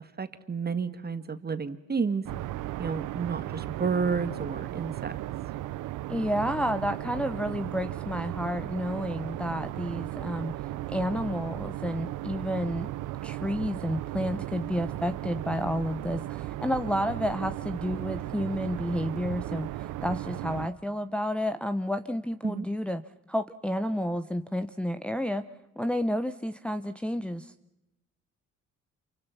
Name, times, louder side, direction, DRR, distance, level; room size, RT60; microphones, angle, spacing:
voice 1, 0.0-2.2 2.8-5.1 22.4-22.7, right 5 dB, 30° right, 10 dB, 2.0 m, -31 dB
sound 1, 2.3-20.7, right 15 dB, 90° right, 0.9 m, -36 dB
voice 2, 6.1-10.5 10.9-12.9 13.2-23.0 23.3-25.4 25.8-27.5, equal, 5° left, 7 dB, 1.0 m, -30 dB
28.0 x 24.5 x 5.8 m, 0.90 s
cardioid pair, 90°, 30 cm